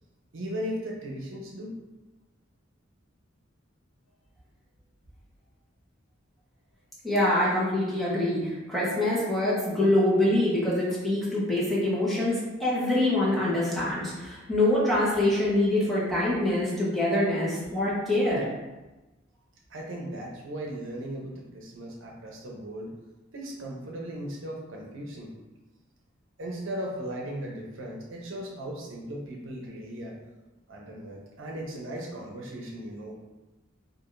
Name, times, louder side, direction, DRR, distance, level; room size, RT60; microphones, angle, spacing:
voice 1, 0.3-1.7 19.7-22.9 23.3-25.3 26.4-30.1 30.7-33.2, right 1 dB, 70° right, -2 dB, 0.8 m, -37 dB
voice 2, 7.0-18.5, left 1 dB, ahead, -9 dB, 1.0 m, -25 dB
4.8 x 2.5 x 2.6 m, 1.1 s
head